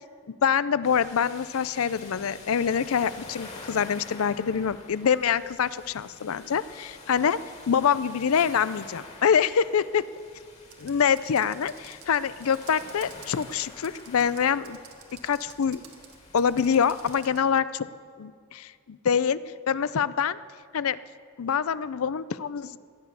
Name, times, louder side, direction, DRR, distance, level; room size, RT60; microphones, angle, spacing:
voice 1, 0.3-7.4 7.7-10.0 10.8-14.8 15.1-15.8 16.3-17.9 18.2-19.4 19.7-20.4 20.7-21.0 21.4-22.8, left 7 dB, 80° left, 17 dB, 0.5 m, -25 dB
sound 1, 0.8-17.2, left 3 dB, 30° left, 2.3 m, -47 dB
Computer keyboard, 10.7-17.4, right 8 dB, 90° right, 1.8 m, -52 dB
18.0 x 11.5 x 6.9 m, 2.1 s
head